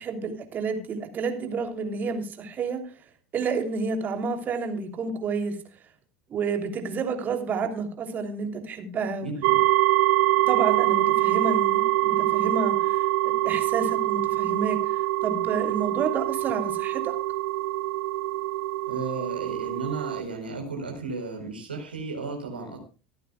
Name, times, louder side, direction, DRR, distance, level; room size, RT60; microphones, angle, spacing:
voice 1, 0.0-2.8 3.3-5.5 6.3-9.3 10.5-13.0 13.2-14.8 15.2-17.2, right 4 dB, 35° right, 5 dB, 3.1 m, -30 dB
voice 2, 9.2-9.6 18.9-22.8, right 3 dB, 80° right, 3 dB, 4.3 m, -34 dB
sound 1, 9.4-20.2, right 19 dB, 60° right, 1.5 m, -24 dB
25.5 x 9.1 x 2.3 m, 0.34 s
figure-of-eight pair, 75°, 5 cm